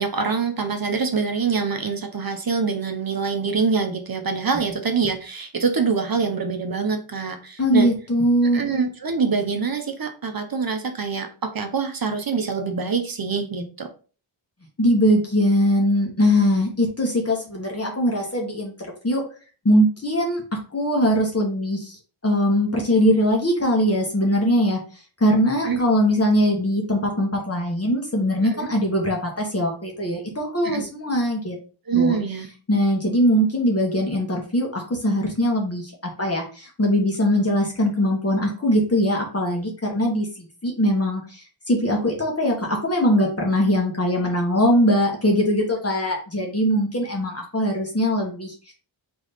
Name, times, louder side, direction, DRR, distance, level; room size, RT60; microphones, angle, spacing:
voice 1, 0.0-7.9 8.5-13.9 25.7-25.8 28.4-28.7 30.6-30.9 31.9-32.5, right 5 dB, 45° right, 6 dB, 0.8 m, -25 dB
voice 2, 7.6-8.6 14.8-19.2 19.6-20.4 20.7-24.8 25.2-31.6 31.9-32.2 32.7-35.9 36.2-48.7, equal, 30° left, 0 dB, 1.3 m, -21 dB
3.4 x 3.1 x 4.1 m, 0.38 s
wide cardioid pair, 80°, 48 cm